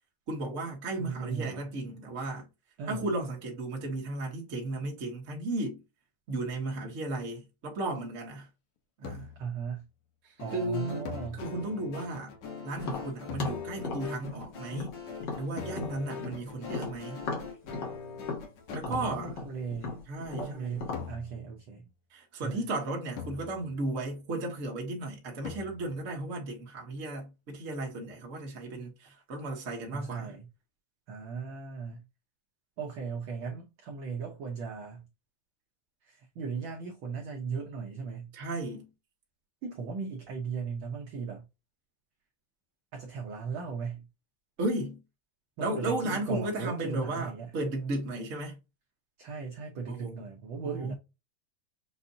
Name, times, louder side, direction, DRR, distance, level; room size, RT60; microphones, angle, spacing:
voice 1, 0.3-2.5 2.9-5.8 6.3-8.5 9.0-9.3 10.2-11.1 11.3-12.3 12.6-15.0 15.3-17.2 18.7-19.3 20.1-20.8 22.1-30.3 38.3-38.9 44.6-45.0 45.6-48.6 49.9-50.2 50.6-50.9, right 2 dB, 40° right, 1.1 m, -35 dB
voice 2, 0.9-1.7 2.8-3.1 9.4-9.9 10.4-11.4 18.9-20.0 20.4-21.9 22.4-22.6 29.9-30.5 31.1-32.1 32.8-35.1 36.0-38.3 39.6-41.5 42.9-44.1 45.6-47.5 49.2-50.9, right 5 dB, 70° right, 1.2 m, -37 dB
sound 1, 9.0-9.6 11.1-11.9 13.3-14.1 15.6-16.3 18.9-19.5 20.9-21.8 23.2-24.0 25.4-26.1, left 6 dB, 90° left, 2.3 m, -43 dB
sound 2, 10.4-18.8, left 5 dB, 70° left, 2.5 m, -43 dB
Tap, 12.8-16.4 16.7-21.1, left 4 dB, 45° left, 1.7 m, -37 dB
6.7 x 2.6 x 2.7 m
omnidirectional pair, 3.4 m